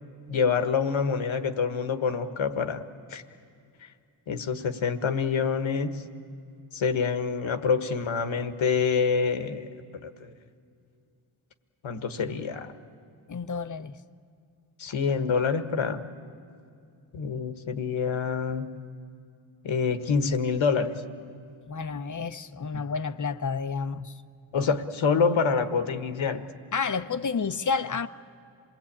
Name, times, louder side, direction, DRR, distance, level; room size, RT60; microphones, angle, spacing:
voice 1, 0.3-2.8 3.1-3.2 4.3-6.0 6.7-9.7 10.0-10.3 11.8-12.7 14.8-16.0 17.1-18.7 19.6-20.9 22.7-22.8 24.5-26.4, left 5 dB, 70° left, 1.5 m, -26 dB
voice 2, 13.3-13.9 21.7-24.1 26.7-28.1, left 5 dB, 40° left, 0.9 m, -30 dB
27.0 x 19.5 x 8.7 m
cardioid pair, 55°, 49 cm